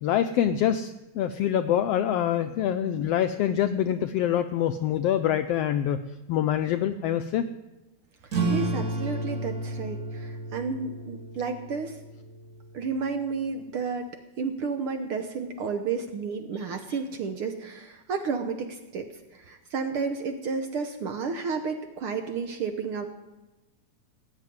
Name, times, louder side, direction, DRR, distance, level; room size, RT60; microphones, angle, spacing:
voice 1, 0.0-6.0 6.3-7.4 16.9-17.0, left 10 dB, 80° left, 9 dB, 1.4 m, -25 dB
sound 1, 8.3-13.4, right 2 dB, 30° right, 2.6 m, -32 dB
voice 2, 8.5-12.0 12.7-14.1 14.4-23.1, right 5 dB, 60° right, 7 dB, 1.5 m, -31 dB
18.5 x 7.3 x 9.4 m, 1.1 s
omnidirectional pair, 3.4 m